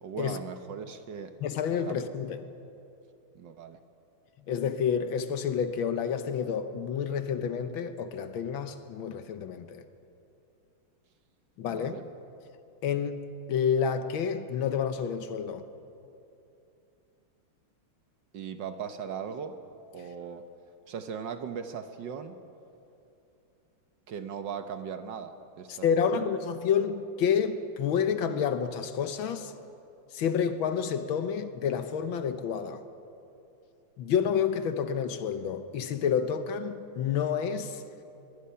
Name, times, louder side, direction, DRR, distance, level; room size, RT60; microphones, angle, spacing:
voice 1, 0.0-1.3 1.8-2.0 3.3-3.8 11.7-12.0 18.3-19.6 19.9-20.4 20.9-22.4 24.1-26.3, right 7 dB, 60° right, 1.5 m, -38 dB
voice 2, 1.4-2.4 4.5-9.8 11.6-12.0 12.8-15.7 25.7-29.5 30.1-32.8 34.0-37.8, left 7 dB, 70° left, 1.6 m, -29 dB
24.0 x 21.5 x 5.6 m
omnidirectional pair, 2.4 m